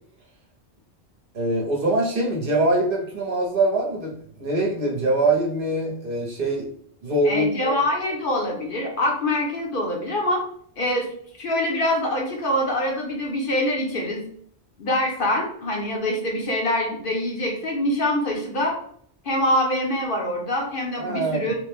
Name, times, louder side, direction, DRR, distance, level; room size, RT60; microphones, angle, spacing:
voice 1, 1.3-6.7 7.0-7.8 21.0-21.5, right 2 dB, 55° right, -1 dB, 0.9 m, -23 dB
voice 2, 7.2-10.4 10.8-11.1 11.4-14.2 14.8-18.8 19.2-21.6, left 1 dB, 55° left, 0 dB, 0.8 m, -24 dB
3.1 x 2.1 x 3.3 m, 0.63 s
omnidirectional pair, 1.1 m